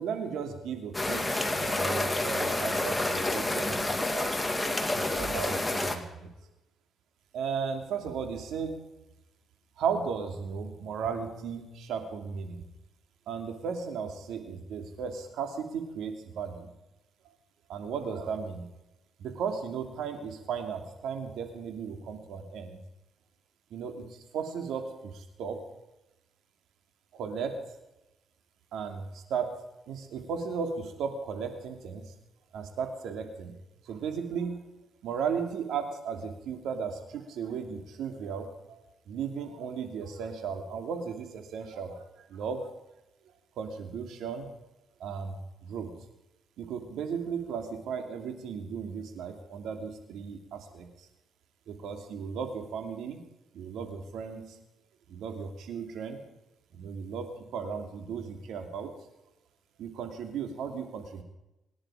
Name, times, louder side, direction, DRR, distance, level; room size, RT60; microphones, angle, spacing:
voice 1, 0.0-4.3 4.9-6.5 7.3-8.8 9.8-12.7 13.3-16.7 17.2-17.3 17.7-18.7 19.2-22.8 23.7-25.6 27.1-27.6 28.7-29.5 29.9-32.1 32.5-33.6 33.8-34.6 35.0-38.8 39.1-42.7 43.6-44.5 45.0-45.9 46.6-51.1 51.7-53.2 53.5-54.6 55.1-56.2 56.7-58.9 59.8-61.2, right 6 dB, 80° right, 5 dB, 2.8 m, -35 dB
sound 1, 0.9-6.0, left 2 dB, 10° left, 2.1 m, -29 dB
26.5 x 11.0 x 5.0 m, 0.96 s
cardioid pair, 90°, 0 cm